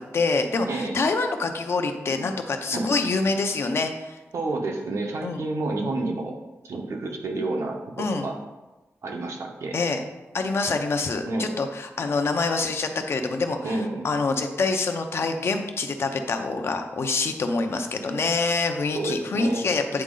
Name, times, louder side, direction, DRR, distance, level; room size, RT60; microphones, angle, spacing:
voice 1, 0.1-4.2 5.2-5.4 8.0-8.3 9.7-10.0 10.3-20.0, left 3 dB, 60° left, 5 dB, 0.7 m, -26 dB
voice 2, 0.7-1.0 2.7-2.9 4.3-6.4 6.6-8.4 9.0-9.8 11.3-11.5 13.6-14.1 18.9-19.7, right 2 dB, 85° right, 2 dB, 1.0 m, -29 dB
8.7 x 4.1 x 3.8 m, 1.1 s
wide cardioid pair, 150°, 5 cm